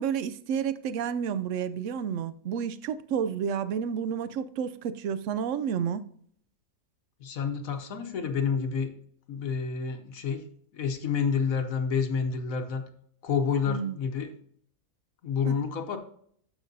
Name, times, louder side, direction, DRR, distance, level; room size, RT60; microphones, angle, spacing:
voice 1, 0.0-6.0 13.7-14.0 15.5-15.6, right 7 dB, 70° right, 0.7 m, -30 dB
voice 2, 7.2-8.9 9.3-10.4 10.7-12.8 13.2-14.3 15.2-16.0, left 6 dB, 60° left, 1.2 m, -29 dB
13.0 x 6.1 x 2.7 m
omnidirectional pair, 1.7 m